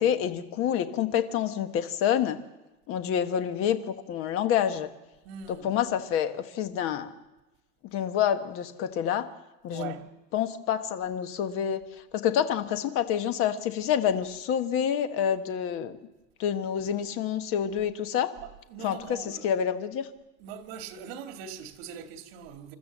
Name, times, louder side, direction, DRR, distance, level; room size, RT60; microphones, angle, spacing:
voice 1, 0.0-2.4 2.9-4.9 5.6-7.1 7.9-9.3 9.6-9.9 10.3-11.8 12.1-16.0 16.4-18.3 18.8-19.2 19.4-20.1, left 9 dB, 45° left, 1.4 m, -27 dB
voice 2, 5.2-5.7 9.7-10.1 18.4-19.5 20.4-22.8, right 7 dB, 75° right, 2.3 m, -41 dB
28.0 x 13.5 x 7.4 m
cardioid pair, 175°, 30 cm